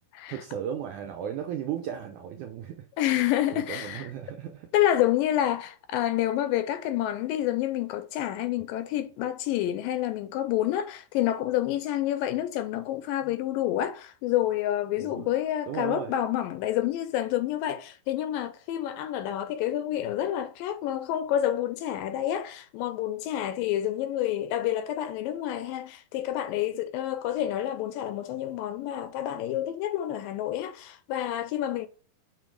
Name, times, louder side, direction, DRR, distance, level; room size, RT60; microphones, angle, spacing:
voice 1, 0.3-2.9 3.5-4.7 15.0-15.3 15.7-16.1, right 9 dB, 80° right, 1.8 m, -35 dB
voice 2, 3.0-4.1 4.7-31.9, left 12 dB, 80° left, 2.1 m, -28 dB
6.9 x 4.1 x 4.6 m
omnidirectional pair, 4.3 m